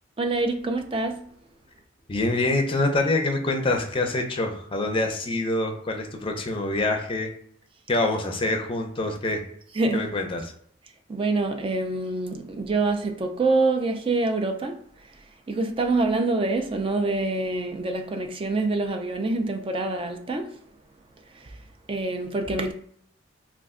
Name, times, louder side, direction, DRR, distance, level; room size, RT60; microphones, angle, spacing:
voice 1, 0.2-1.2 9.8-10.1 11.1-14.8 15.5-20.6 21.9-22.7, right 3 dB, 30° right, 0.3 m, -26 dB
voice 2, 2.1-7.3 7.9-9.4 9.9-10.5, left 2 dB, 30° left, 0.5 m, -25 dB
2.4 x 2.2 x 3.6 m
head